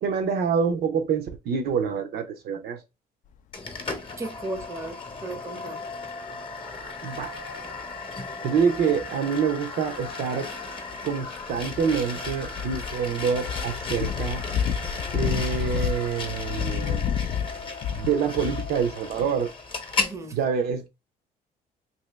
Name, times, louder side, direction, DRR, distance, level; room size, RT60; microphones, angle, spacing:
voice 1, 0.0-2.8 7.0-7.3 8.4-10.5 11.0-14.4 15.1-17.0 17.9-19.5 20.3-20.9, right 6 dB, 70° right, 0.8 m, -26 dB
sound 1, 3.5-3.9 4.3-4.6 5.6-18.9, left 8 dB, 50° left, 0.4 m, -33 dB
sound 2, 3.5-20.2, left 3 dB, 30° left, 0.9 m, -36 dB
voice 2, 4.2-5.9 20.0-20.4, right 2 dB, 15° right, 0.7 m, -35 dB
2.8 x 2.7 x 3.2 m
cardioid pair, 110°, 17 cm